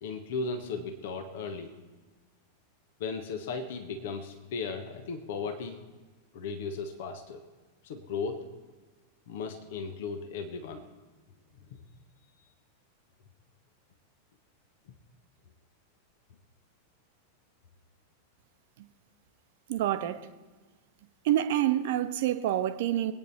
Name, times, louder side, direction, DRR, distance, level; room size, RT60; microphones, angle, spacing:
voice 1, 0.0-1.8 3.0-5.8 6.3-7.4 7.8-8.5 9.3-10.8, left 4 dB, 55° left, 7 dB, 1.3 m, -36 dB
voice 2, 19.7-20.2 21.2-23.1, right 12 dB, 55° right, 9 dB, 1.0 m, -27 dB
23.5 x 9.4 x 4.2 m, 1.3 s
figure-of-eight pair, 90°, 0 cm